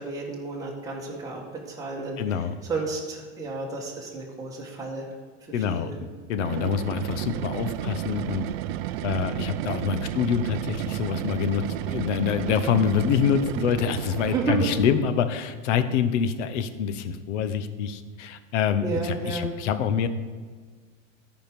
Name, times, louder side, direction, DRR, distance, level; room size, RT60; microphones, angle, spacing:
voice 1, 0.0-1.4 1.7-5.1 5.5-6.0 14.3-14.7 18.8-19.5, right 3 dB, 10° right, -4 dB, 1.8 m, -31 dB
voice 2, 2.2-2.5 5.5-5.9 6.3-8.5 9.0-20.1, left 7 dB, 70° left, 11 dB, 0.9 m, -26 dB
sound 1, 6.3-15.1, right 14 dB, 55° right, 0.5 m, -32 dB
13.0 x 5.1 x 5.2 m, 1.5 s
supercardioid pair, 145°, 37 cm